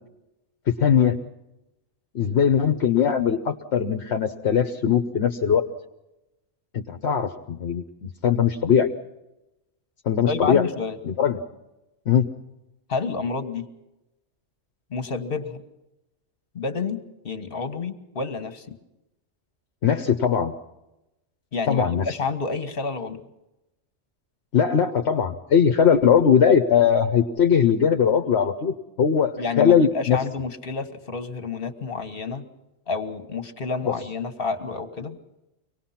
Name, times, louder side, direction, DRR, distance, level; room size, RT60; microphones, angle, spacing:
voice 1, 0.7-1.2 2.1-5.7 6.7-8.9 10.0-10.7 11.0-11.4 12.1-12.3 19.8-20.5 21.7-22.1 24.5-30.2 33.8-33.9, left 7 dB, 65° left, 6 dB, 1.2 m, -20 dB
voice 2, 10.3-11.0 12.9-13.7 14.9-15.6 16.5-18.8 21.5-23.2 29.4-32.5 32.9-35.2, left 4 dB, 50° left, 8 dB, 1.7 m, -29 dB
25.0 x 19.0 x 5.8 m, 0.94 s
omnidirectional pair, 1.2 m